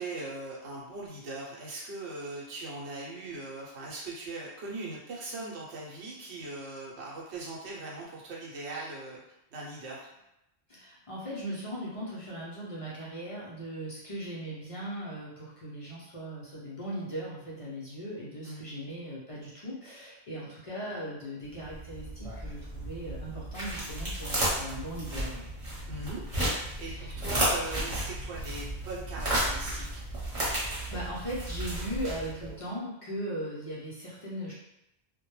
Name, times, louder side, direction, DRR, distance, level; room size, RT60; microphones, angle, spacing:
voice 1, 0.0-9.2 9.5-10.1 18.4-18.7 25.9-26.2 26.8-30.0, right 2 dB, 85° right, -4 dB, 0.9 m, -40 dB
voice 2, 10.7-25.4 26.9-27.2 30.9-34.5, right 1 dB, 45° left, -7 dB, 0.5 m, -38 dB
sound 1, 21.5-32.6, right 1 dB, 35° right, 0.9 m, -33 dB
2.1 x 2.1 x 3.0 m, 0.88 s
omnidirectional pair, 1.1 m